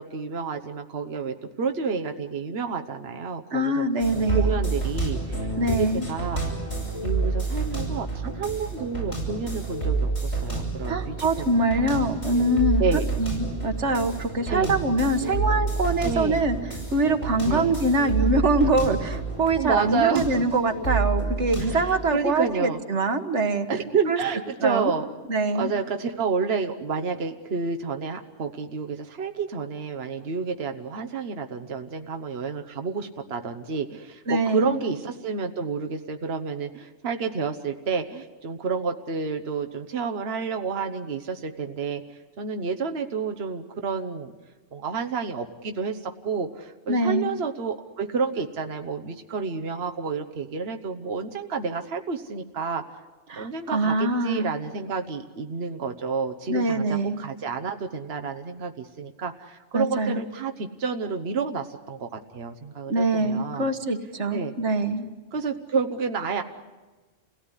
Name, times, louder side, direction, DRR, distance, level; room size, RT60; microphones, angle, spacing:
voice 1, 0.0-6.4 7.0-11.6 12.3-12.4 12.8-13.1 14.4-14.8 16.0-16.4 17.4-17.8 19.6-20.3 21.6-22.8 23.7-25.1 25.5-42.0 42.4-44.3 44.7-52.8 53.4-63.7 64.3-64.5 65.3-66.4, right 5 dB, 65° right, 5 dB, 1.3 m, -30 dB
voice 2, 3.5-4.5 5.6-6.1 10.9-12.8 13.2-16.6 16.9-23.7 24.1-24.2 24.6-24.9 25.3-25.7 34.3-34.8 46.9-47.3 53.3-54.5 56.5-57.2 59.7-60.2 62.9-65.1, right 2 dB, 90° right, 8 dB, 1.8 m, -24 dB
sound 1, 4.0-22.1, right 3 dB, 80° left, 7.7 m, -29 dB
28.5 x 18.0 x 9.9 m, 1.3 s
omnidirectional pair, 1.2 m